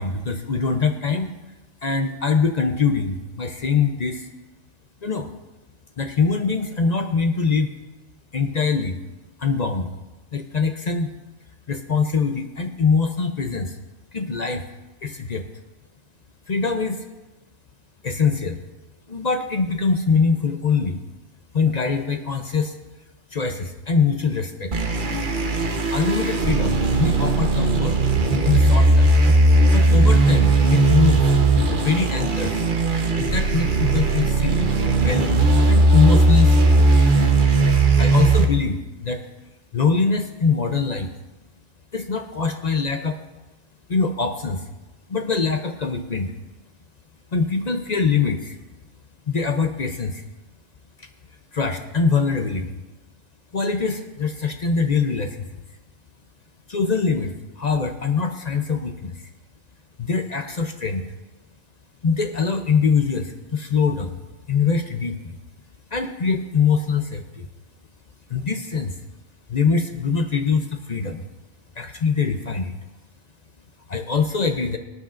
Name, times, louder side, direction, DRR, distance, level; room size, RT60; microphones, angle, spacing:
voice 1, 0.0-1.3 1.8-4.3 5.0-5.3 6.0-7.7 8.3-9.0 9.4-9.9 10.3-11.1 11.7-13.8 14.1-14.6 15.0-15.4 16.5-17.0 18.0-18.6 19.1-21.0 21.5-22.7 23.3-24.7 25.9-28.0 28.4-29.2 29.7-31.3 31.7-32.6 33.2-35.4 35.7-36.9 38.0-39.3 39.7-41.1 41.9-43.2 43.9-44.6 45.1-46.3 47.3-48.6 49.3-50.2 51.5-52.7 53.5-55.6 56.7-59.2 60.0-61.0 62.0-64.1 64.5-65.3 65.9-67.5 68.3-69.0 69.5-71.3 71.8-72.7 73.9-74.8, left 5 dB, 45° left, 6 dB, 0.6 m, -23 dB
sound 1, 24.7-38.4, right 2 dB, 45° right, 1.1 m, -17 dB
20.0 x 9.7 x 2.5 m, 1.1 s
omnidirectional pair, 1.3 m